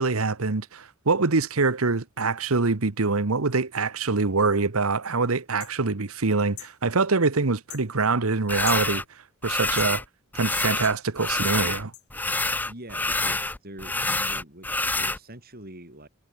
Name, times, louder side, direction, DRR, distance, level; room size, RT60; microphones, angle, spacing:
voice 1, 0.0-9.0 9.4-10.0 10.3-11.9, right 3 dB, 75° right, 1.2 m, -24 dB
sound 1, 5.6-5.8 6.6-6.7 7.7-7.9 8.6-8.9 9.8-9.9 10.8-11.0 11.9-12.0, left 17 dB, 85° left, 1.2 m, -40 dB
sound 2, 8.5-9.0 9.4-10.0 10.3-11.8 12.1-15.2, left 2 dB, 10° left, 0.5 m, -27 dB
voice 2, 12.6-16.1, right 1 dB, 45° right, 7.0 m, -44 dB
head